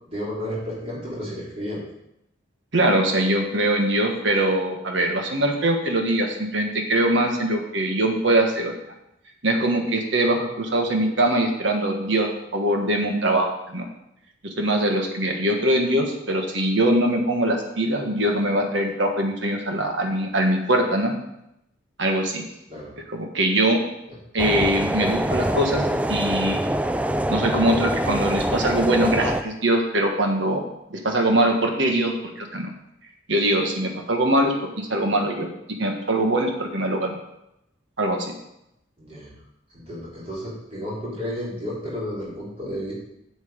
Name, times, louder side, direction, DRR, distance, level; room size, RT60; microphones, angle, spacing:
voice 1, 0.1-1.8 22.7-22.9 24.1-24.2 39.0-39.3 39.7-42.9, equal, 30° right, -7 dB, 4.1 m, -32 dB
voice 2, 2.7-8.7 9.4-12.3 12.5-13.9 14.4-21.1 22.0-22.4 23.1-23.8 24.3-26.6 27.3-32.7 33.3-35.5 35.8-37.2 38.0-38.3, right 1 dB, 70° right, 2 dB, 1.5 m, -22 dB
sound 1, 24.4-29.4, right 1 dB, 5° right, 0.3 m, -24 dB
8.3 x 8.2 x 5.2 m, 0.83 s
head